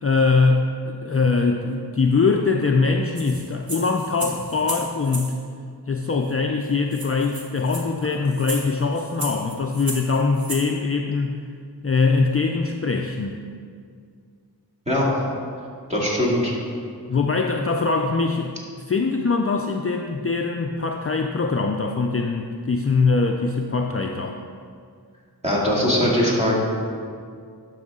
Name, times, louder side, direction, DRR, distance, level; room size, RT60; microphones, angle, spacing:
voice 1, 0.0-5.4 5.9-11.4 11.8-13.4 17.1-18.6 18.9-24.4, left 4 dB, 35° left, 2 dB, 0.4 m, -22 dB
sound 1, 3.2-5.3 6.3-6.4 6.6-6.7 6.9-10.7, right 2 dB, 45° right, 1.4 m, -34 dB
voice 2, 15.9-16.5 25.4-26.6, left 1 dB, 15° right, -6 dB, 2.3 m, -20 dB
12.0 x 6.2 x 3.7 m, 2.2 s
wide cardioid pair, 90°, 40 cm